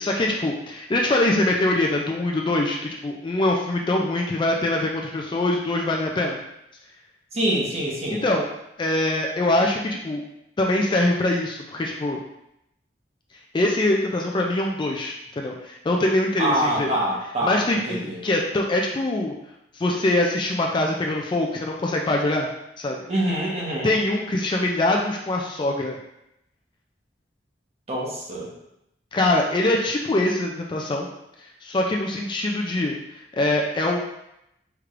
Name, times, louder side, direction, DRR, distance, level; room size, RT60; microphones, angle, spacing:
voice 1, 0.0-6.4 8.1-8.5 8.8-10.2 10.6-12.2 13.5-16.9 17.4-19.3 19.7-22.5 22.8-23.0 23.8-26.0 29.1-31.1 31.4-34.0, left 1 dB, 25° left, 0 dB, 0.3 m, -23 dB
voice 2, 7.3-8.2 16.4-17.6 17.9-18.2 23.1-23.9 27.9-28.5, right 1 dB, 35° right, -4 dB, 1.0 m, -25 dB
4.5 x 3.1 x 2.5 m, 0.83 s
head